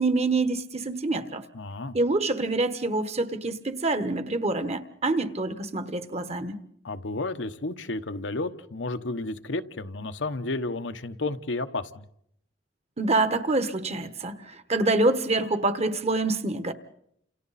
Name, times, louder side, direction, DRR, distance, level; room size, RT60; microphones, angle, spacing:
voice 1, 0.0-1.4 1.9-6.6 13.0-16.7, right 2 dB, 35° right, 10 dB, 1.3 m, -26 dB
voice 2, 1.5-2.0 6.8-12.1, left 2 dB, 80° left, 9 dB, 1.1 m, -32 dB
29.5 x 28.0 x 4.2 m, 0.73 s
head